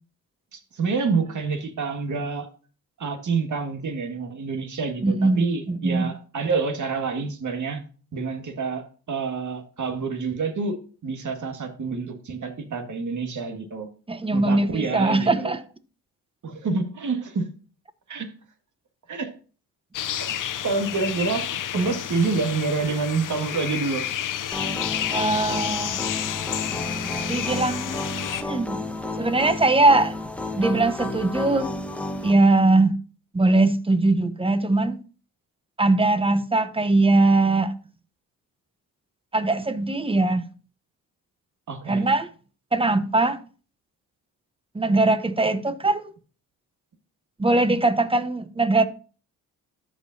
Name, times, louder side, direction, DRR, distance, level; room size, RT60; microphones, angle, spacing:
voice 1, 0.5-2.5 3.0-7.8 8.1-13.9 14.3-15.5 16.4-17.5 18.1-18.3 19.1-19.3 20.2-24.1 41.7-42.1, right 4 dB, 50° right, 1.9 m, -28 dB
voice 2, 5.0-6.1 14.1-15.6 25.1-26.0 27.3-28.1 28.4-28.8 29.2-30.1 30.6-31.7 32.2-33.0 33.3-35.0 35.8-37.7 39.3-40.4 41.9-42.3 42.7-43.4 44.7-46.0 47.4-48.9, right 2 dB, 15° right, 0.9 m, -21 dB
sound 1, 19.9-28.4, left 10 dB, 55° left, 0.7 m, -30 dB
sound 2, 24.5-32.3, left 2 dB, 5° left, 1.2 m, -32 dB
13.5 x 5.1 x 2.7 m
cardioid pair, 70°, 37 cm